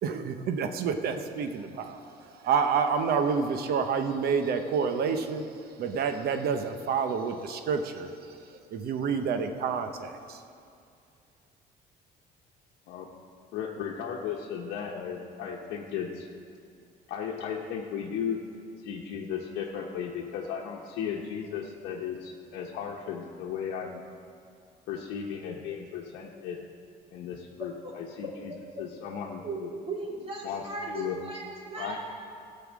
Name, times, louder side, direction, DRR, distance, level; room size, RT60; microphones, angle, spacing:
voice 1, 0.0-10.4, right 6 dB, 65° right, 7 dB, 0.9 m, -29 dB
voice 2, 13.5-16.3 17.1-18.4 18.8-24.0 24.9-26.6 27.1-29.7 30.4-31.2 31.8-32.0, left 7 dB, 90° left, -2 dB, 0.9 m, -35 dB
voice 3, 27.6-27.9 29.4-29.6 29.9-32.0, right 3 dB, 35° right, -3 dB, 3.0 m, -37 dB
14.5 x 5.6 x 7.4 m, 2.4 s
cardioid pair, 110°, 17 cm